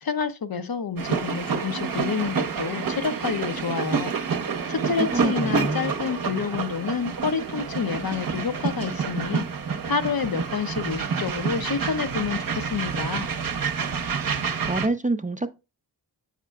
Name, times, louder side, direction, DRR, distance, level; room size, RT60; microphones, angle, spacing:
voice 1, 0.0-4.1 4.7-9.5 9.8-13.3, left 5 dB, 60° left, 0.7 m, -28 dB
sound 1, 1.0-14.9, right 6 dB, 55° right, 0.8 m, -28 dB
voice 2, 5.0-5.9 14.3-15.5, right 2 dB, 20° right, 0.4 m, -27 dB
7.2 x 5.8 x 2.3 m
wide cardioid pair, 50°, 41 cm